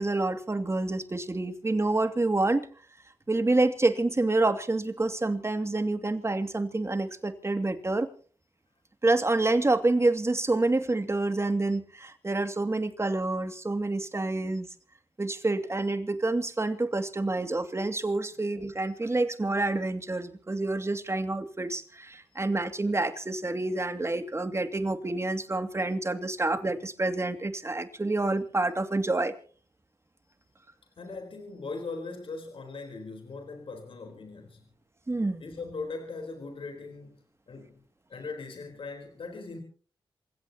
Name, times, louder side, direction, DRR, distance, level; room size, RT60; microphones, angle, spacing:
voice 1, 0.0-2.7 3.3-8.1 9.0-14.7 15.2-29.3 35.1-35.4, right 2 dB, 30° right, 2.4 m, -28 dB
voice 2, 31.0-34.7 35.4-37.8 38.1-39.6, left 3 dB, 65° left, 4.1 m, -40 dB
27.5 x 16.0 x 3.0 m
cardioid pair, 55°, 10 cm